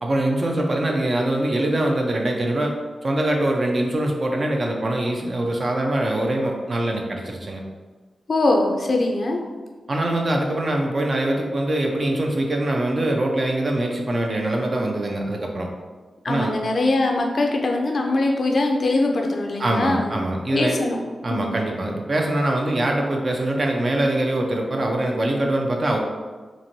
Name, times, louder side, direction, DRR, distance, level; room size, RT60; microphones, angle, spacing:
voice 1, 0.0-2.7 3.0-7.6 9.9-15.7 16.3-16.5 19.6-20.8 21.2-26.0, right 1 dB, 45° right, 1 dB, 0.5 m, -23 dB
voice 2, 8.3-9.4 16.2-20.1 20.5-21.0 21.3-21.6, left 2 dB, 50° left, 1 dB, 0.3 m, -22 dB
3.0 x 2.5 x 2.6 m, 1.4 s
wide cardioid pair, 90°, 0 cm